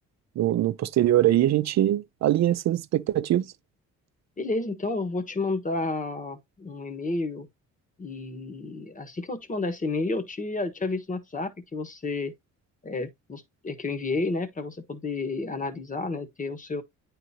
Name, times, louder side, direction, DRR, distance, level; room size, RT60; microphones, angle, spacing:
voice 1, 0.4-3.4, right 13 dB, 60° right, 0.5 m, -22 dB
voice 2, 4.4-7.5 8.0-12.3 12.8-16.8, left 3 dB, 25° left, 1.3 m, -31 dB
9.1 x 3.9 x 2.7 m
cardioid pair, 90°, 30 cm